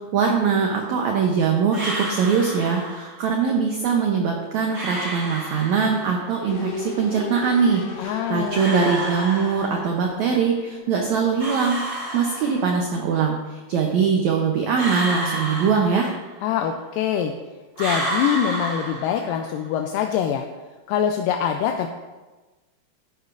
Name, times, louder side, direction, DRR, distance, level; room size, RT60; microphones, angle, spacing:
voice 1, 0.1-16.1, right 6 dB, 75° right, 1 dB, 1.7 m, -22 dB
sound 1, 1.7-3.2 4.7-6.2 8.5-10.1 11.4-12.9 14.7-16.5 17.8-19.6, right 1 dB, 30° right, 3.5 m, -30 dB
sound 2, 6.5-11.4 11.7-11.8, left 2 dB, 45° left, 2.0 m, -36 dB
voice 2, 8.0-8.6 16.4-17.3 17.8-20.5 20.9-21.9, left 9 dB, 80° left, 4 dB, 2.0 m, -24 dB
13.5 x 10.5 x 2.6 m, 1.2 s
omnidirectional pair, 4.4 m